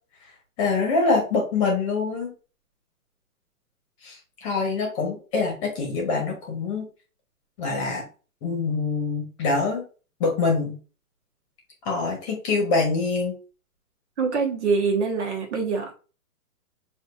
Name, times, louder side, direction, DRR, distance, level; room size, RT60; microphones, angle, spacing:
voice 1, 0.6-2.3 4.0-6.8 7.6-8.0 8.4-9.8 10.2-10.8 11.8-13.3, left 4 dB, 20° left, 1.2 m, -25 dB
voice 2, 14.2-15.9, right 5 dB, 50° right, 1.4 m, -24 dB
6.7 x 2.7 x 2.5 m
hypercardioid pair, 170°, 45 cm